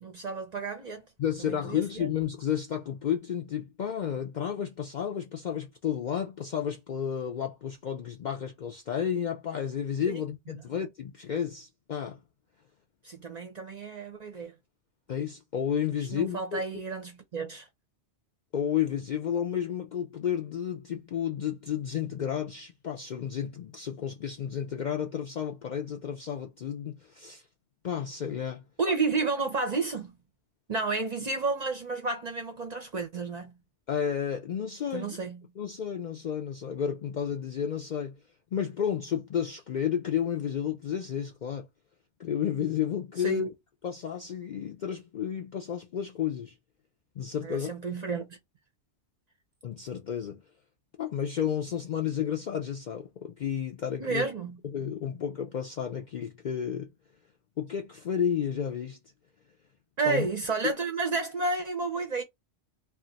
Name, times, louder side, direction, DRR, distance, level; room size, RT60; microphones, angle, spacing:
voice 1, 0.0-1.1 1.4-2.1 10.1-10.2 13.0-14.5 16.1-17.7 28.8-30.2 30.7-33.6 34.9-35.4 43.2-43.4 47.4-48.4 54.0-54.6 60.0-62.2, right 4 dB, 45° right, 0.6 m, -31 dB
voice 2, 1.2-12.2 15.1-16.6 18.5-27.4 27.8-28.6 33.9-35.2 35.6-38.2 38.5-41.7 42.2-43.5 43.8-46.5 47.2-47.7 49.6-50.4 51.0-54.2 54.6-56.9 57.6-59.0 60.1-60.3, left 8 dB, 60° left, 0.5 m, -32 dB
2.5 x 2.4 x 3.9 m
omnidirectional pair, 1.2 m